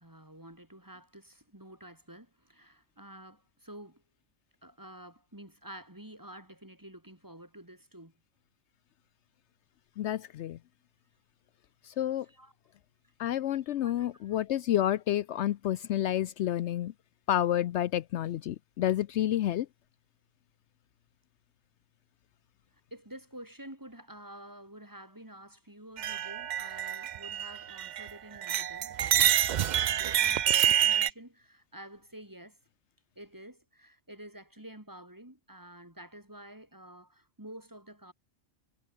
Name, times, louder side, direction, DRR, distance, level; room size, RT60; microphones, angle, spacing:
voice 1, 0.0-4.0 4.6-8.1 11.9-12.0 12.2-12.5 13.7-14.4 22.9-29.3 29.6-32.6 33.1-38.1, right 1 dB, 15° right, 3.0 m, -49 dB
voice 2, 10.0-10.6 11.8-12.3 13.2-16.9 17.3-19.7, left 12 dB, 75° left, 0.8 m, -29 dB
sound 1, 26.0-28.1 28.4-31.1, right 10 dB, 60° right, 0.5 m, -27 dB
omnidirectional pair, 1.2 m